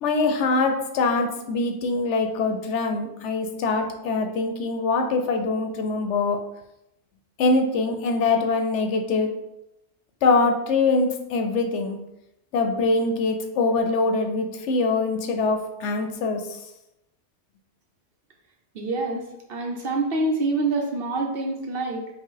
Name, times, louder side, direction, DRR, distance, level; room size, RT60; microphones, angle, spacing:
voice 1, 0.0-6.4 7.4-9.3 10.2-12.0 12.5-16.6, left 3 dB, 80° left, 4 dB, 0.9 m, -23 dB
voice 2, 18.7-22.1, right 2 dB, 60° right, 1 dB, 0.8 m, -26 dB
4.9 x 2.0 x 3.8 m, 0.86 s
omnidirectional pair, 1.2 m